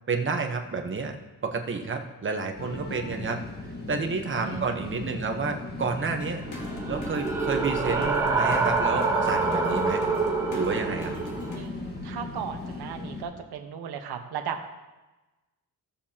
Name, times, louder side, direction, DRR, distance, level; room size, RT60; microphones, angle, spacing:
voice 1, 0.1-1.2 1.4-3.4 3.9-6.4 6.9-10.0 10.5-11.1, right 4 dB, 30° right, 4 dB, 1.0 m, -30 dB
sound 1, 2.6-13.2, left 2 dB, 25° left, 1.5 m, -38 dB
sound 2, 6.2-11.7, left 2 dB, 50° left, 1.8 m, -46 dB
sound 3, 6.4-11.6, right 4 dB, 5° right, 1.3 m, -26 dB
voice 2, 11.3-14.8, right 7 dB, 75° right, 5 dB, 1.2 m, -36 dB
17.0 x 7.0 x 2.9 m, 1.1 s
cardioid pair, 150°, 39 cm